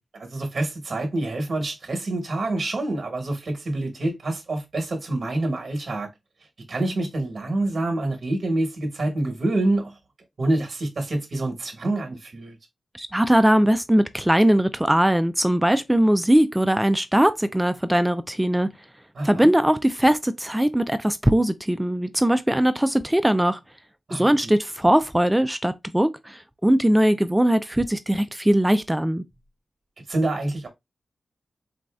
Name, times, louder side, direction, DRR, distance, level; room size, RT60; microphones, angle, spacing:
voice 1, 0.1-6.1 6.7-10.0 10.4-12.6 19.1-19.5 24.1-24.5 30.1-30.7, right 2 dB, 55° right, 1.0 m, -27 dB
voice 2, 12.9-18.7 19.2-23.6 24.1-29.2, right 1 dB, 10° right, 0.3 m, -20 dB
4.0 x 2.5 x 2.2 m
cardioid pair, 70°, 0 cm